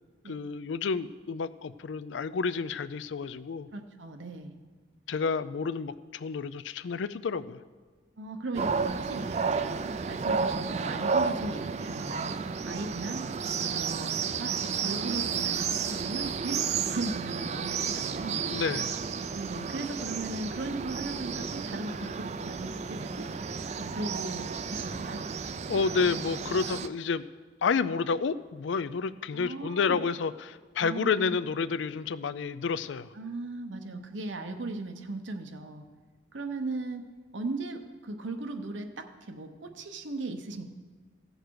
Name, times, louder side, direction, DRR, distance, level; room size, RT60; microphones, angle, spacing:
voice 1, 0.3-3.7 5.1-7.6 18.5-19.0 25.7-27.3 27.6-33.1, left 5 dB, 80° left, 15 dB, 0.4 m, -30 dB
voice 2, 3.7-4.5 8.2-12.4 12.6-13.3 13.6-18.4 19.3-23.3 23.8-25.2 29.3-30.0 30.8-31.3 33.1-35.8 36.3-37.1 37.3-40.7, right 2 dB, 85° right, 5 dB, 0.9 m, -37 dB
sound 1, 8.5-26.9, right 5 dB, 35° right, 0.3 m, -32 dB
16.0 x 6.6 x 4.7 m, 1.4 s
head